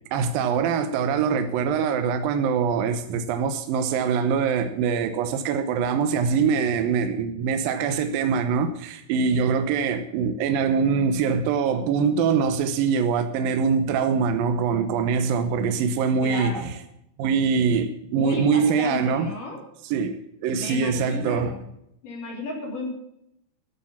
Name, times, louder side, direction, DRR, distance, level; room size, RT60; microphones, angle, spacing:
voice 1, 0.1-16.7 17.2-19.3 19.8-21.5, right 6 dB, 75° right, 2.3 m, -23 dB
voice 2, 16.2-16.7 18.2-19.6 20.5-21.6 22.0-22.9, left 2 dB, 50° left, 5.5 m, -32 dB
12.5 x 8.9 x 7.2 m
omnidirectional pair, 4.9 m